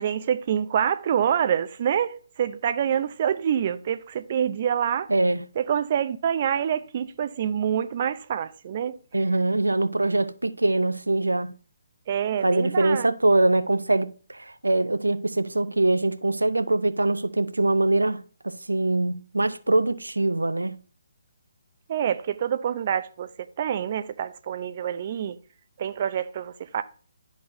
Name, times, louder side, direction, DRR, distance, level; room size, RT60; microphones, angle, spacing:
voice 1, 0.0-5.1 5.6-9.0 12.1-13.1 21.9-23.3 23.6-25.4 25.8-26.8, right 9 dB, 40° right, 0.5 m, -26 dB
voice 2, 5.1-5.4 9.1-11.6 12.4-20.8, right 2 dB, 80° right, 0.6 m, -23 dB
12.0 x 4.1 x 2.6 m
figure-of-eight pair, 140°, 0 cm